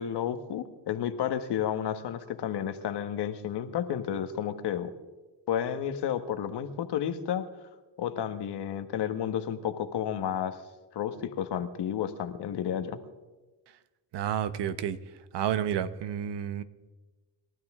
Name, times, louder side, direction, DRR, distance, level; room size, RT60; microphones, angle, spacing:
voice 1, 0.0-4.9 5.5-7.5 8.0-10.6 10.9-13.0, left 9 dB, 60° left, 9 dB, 1.5 m, -31 dB
voice 2, 14.1-15.0 15.3-16.6, right 9 dB, 65° right, 13 dB, 1.1 m, -30 dB
28.0 x 12.5 x 3.7 m, 1.2 s
cardioid pair, 95°, 45 cm